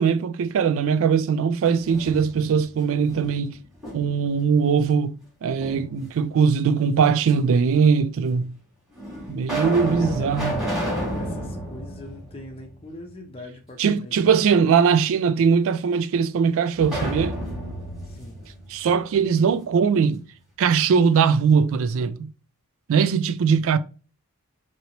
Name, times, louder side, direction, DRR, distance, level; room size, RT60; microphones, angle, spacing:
voice 1, 0.0-3.6 3.9-8.5 9.3-10.6 13.8-17.4 18.7-20.3 20.6-22.3 22.9-23.8, right 6 dB, 60° right, 0.3 m, -21 dB
sound 1, 1.7-2.6 3.1-4.3 5.6-6.4 7.3-7.4 8.3-8.4 8.9-13.0 13.4-13.5 16.8-19.6, right 1 dB, 5° right, 1.4 m, -31 dB
voice 2, 9.7-10.6 11.1-14.3 18.1-18.4, left 2 dB, 25° left, 0.6 m, -41 dB
2.9 x 2.8 x 2.8 m
head